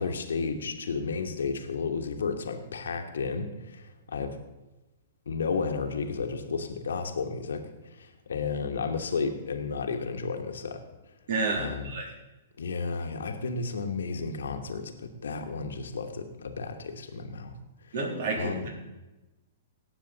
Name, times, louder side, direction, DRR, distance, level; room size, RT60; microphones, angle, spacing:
voice 1, 0.0-4.4 5.3-10.8 11.5-11.9 12.6-17.5 17.8-18.0 18.3-18.7, left 4 dB, 80° left, 5 dB, 1.3 m, -32 dB
voice 2, 11.3-12.1 17.9-18.7, right 3 dB, 60° right, 0 dB, 3.2 m, -30 dB
18.0 x 7.0 x 4.0 m, 1.0 s
hypercardioid pair, 120°, 0 cm